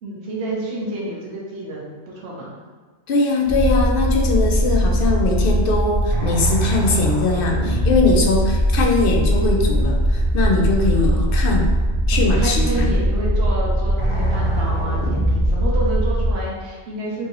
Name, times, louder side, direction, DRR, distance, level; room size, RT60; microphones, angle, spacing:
voice 1, 0.0-2.5 10.9-11.3 12.1-17.3, right 1 dB, 65° right, -4 dB, 1.2 m, -29 dB
voice 2, 3.1-11.7 12.1-12.9, left 3 dB, 55° left, 1 dB, 0.7 m, -21 dB
sound 1, 3.4-16.3, equal, 30° right, 0.8 m, -20 dB
4.5 x 2.8 x 3.0 m, 1.4 s
omnidirectional pair, 1.2 m